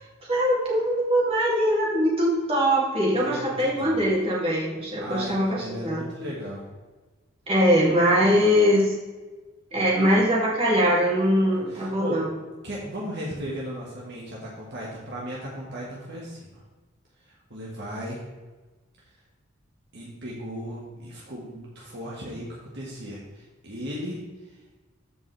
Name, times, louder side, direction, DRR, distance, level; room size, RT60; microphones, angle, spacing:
voice 1, 0.2-6.0 7.5-8.9 9.7-12.3, equal, 25° right, -5 dB, 2.6 m, -22 dB
voice 2, 3.1-4.0 5.0-6.7 8.1-8.2 11.4-12.2 12.6-16.4 17.2-18.2 19.9-24.2, equal, 50° right, -4 dB, 1.7 m, -36 dB
14.0 x 5.3 x 3.4 m, 1.2 s
head